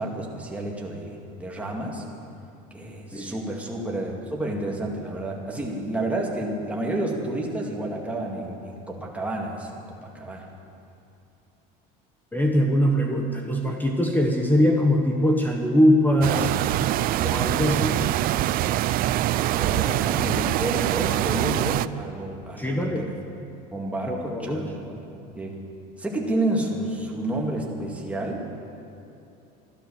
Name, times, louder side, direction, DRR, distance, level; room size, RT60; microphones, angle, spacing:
voice 1, 0.0-2.0 2.7-10.5 19.4-23.1 23.7-25.0 25.4-25.6 26.0-28.4, right 1 dB, 5° right, -2 dB, 2.1 m, -30 dB
voice 2, 12.3-16.5 17.2-17.9 22.6-23.1 24.1-24.7, equal, 10° left, 1 dB, 1.2 m, -22 dB
sound 1, 16.2-21.9, right 14 dB, 50° right, 0.4 m, -24 dB
13.0 x 12.5 x 7.2 m, 2.8 s
cardioid pair, 125°, 19 cm